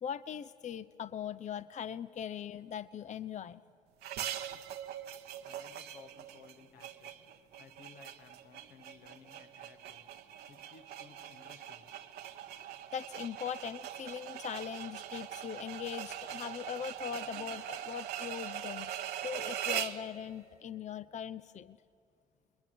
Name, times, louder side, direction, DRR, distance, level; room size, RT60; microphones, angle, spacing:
voice 1, 0.0-3.6 12.9-21.8, left 8 dB, 45° left, 15 dB, 0.6 m, -40 dB
sound 1, 4.0-20.1, right 10 dB, 75° right, 1.0 m, -42 dB
voice 2, 5.4-10.1 10.5-11.9, left 6 dB, 75° left, 7 dB, 1.6 m, -58 dB
29.5 x 21.5 x 7.7 m, 2.7 s
hypercardioid pair, 50°, 16 cm